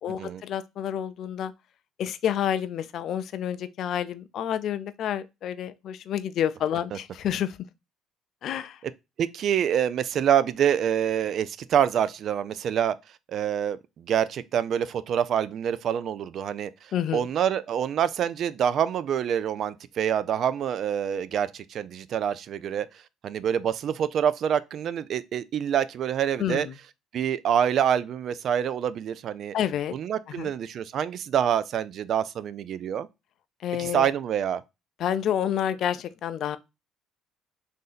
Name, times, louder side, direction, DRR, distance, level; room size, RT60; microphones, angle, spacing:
voice 1, 0.0-1.5 2.0-7.6 8.4-8.8 16.9-17.3 26.4-26.8 29.5-30.0 30.3-30.5 33.6-34.1 35.0-36.6, left 10 dB, 60° left, 0.4 m, -29 dB
voice 2, 9.2-13.0 13.3-16.7 17.1-22.9 23.2-26.7 27.1-29.6 29.9-33.1 33.8-34.6, right 9 dB, 55° right, 0.3 m, -26 dB
3.7 x 2.7 x 3.9 m
cardioid pair, 95°, 0 cm